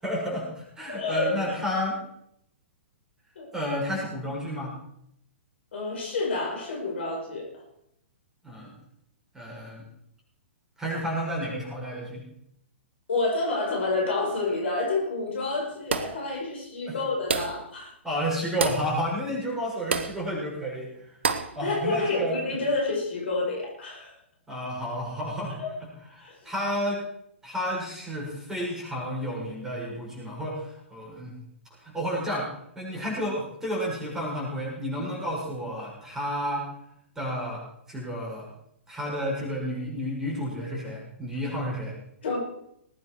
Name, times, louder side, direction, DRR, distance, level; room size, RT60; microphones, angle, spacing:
voice 1, 0.0-2.0 3.5-4.8 8.4-8.7 9.3-9.8 10.8-12.3 16.9-17.0 18.0-21.1 21.5-22.4 24.5-25.6 26.2-27.0 27.4-31.3 31.8-36.6 37.2-38.5 38.9-41.9, equal, 5° right, -5 dB, 7.1 m, -31 dB
voice 2, 0.9-1.3 3.3-3.5 5.7-7.6 13.1-17.9 21.6-24.1 25.6-25.8 26.2-26.3 42.2-42.4, left 3 dB, 65° left, -2 dB, 6.4 m, -29 dB
sound 1, 15.9-16.3 17.3-17.7 18.6-18.9 19.9-20.2 21.2-21.6, right 5 dB, 65° right, 1.3 m, -28 dB
20.0 x 9.8 x 4.9 m, 0.74 s
figure-of-eight pair, 115°, 7 cm